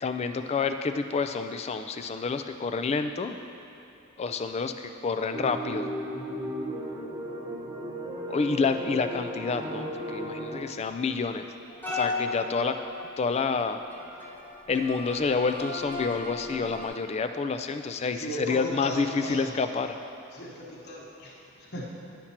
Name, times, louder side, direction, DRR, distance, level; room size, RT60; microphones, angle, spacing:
voice 1, 0.0-3.4 4.2-5.8 8.3-11.5 11.9-12.8 13.2-13.8 14.7-20.0, left 4 dB, 30° left, 8 dB, 0.3 m, -28 dB
sound 1, 5.3-10.6, equal, 20° right, 1.0 m, -35 dB
sound 2, 11.7-16.9, left 3 dB, 10° left, 1.0 m, -36 dB
voice 2, 18.1-19.5 20.3-21.9, equal, 50° left, -3 dB, 1.1 m, -37 dB
10.0 x 5.9 x 4.3 m, 2.9 s
head